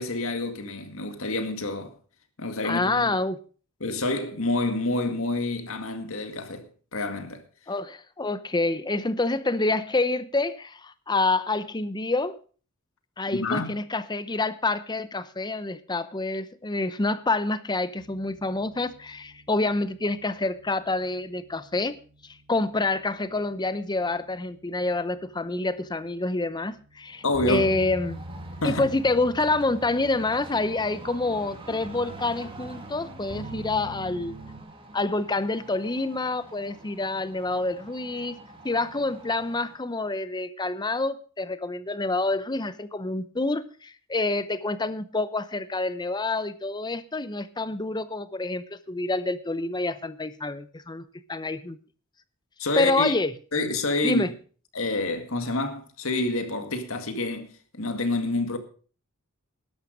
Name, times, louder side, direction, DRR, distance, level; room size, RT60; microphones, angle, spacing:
voice 1, 0.0-1.9 2.4-3.1 3.8-7.4 13.3-13.8 27.2-27.7 28.6-28.9 52.6-53.1 53.5-54.3 54.7-58.6, left 2 dB, 65° left, 2.0 m, -28 dB
voice 2, 2.6-3.4 7.7-12.4 13.2-22.0 22.5-28.2 28.6-34.4 34.9-38.4 38.6-51.0 51.3-51.8 52.8-53.3 54.0-54.3, left 2 dB, 20° left, 0.7 m, -27 dB
sound 1, 18.0-34.6, right 1 dB, 55° right, 2.5 m, -45 dB
sound 2, 27.1-39.9, right 2 dB, 25° right, 2.3 m, -47 dB
13.0 x 11.0 x 5.2 m
head